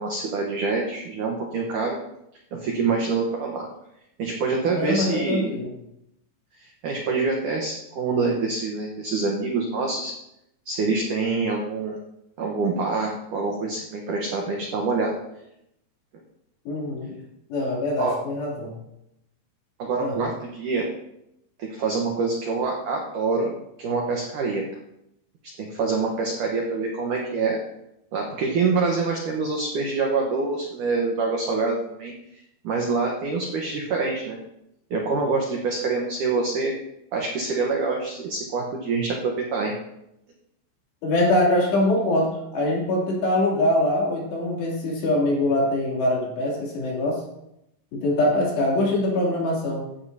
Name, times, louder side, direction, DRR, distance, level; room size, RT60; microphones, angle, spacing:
voice 1, 0.0-2.0 2.5-3.7 4.2-5.6 6.6-10.1 10.7-12.0 12.4-15.1 18.0-18.2 19.8-20.9 21.6-23.5 23.8-24.6 25.6-27.6 28.1-32.1 32.6-34.4 34.9-36.7 37.1-39.7, right 4 dB, 75° right, 0 dB, 1.9 m, -26 dB
voice 2, 4.6-5.7 16.7-17.2 17.5-18.7 20.0-20.2 41.0-47.2 47.9-49.8, left 1 dB, 65° left, -3 dB, 5.0 m, -23 dB
15.5 x 9.6 x 2.8 m, 0.81 s
omnidirectional pair, 5.4 m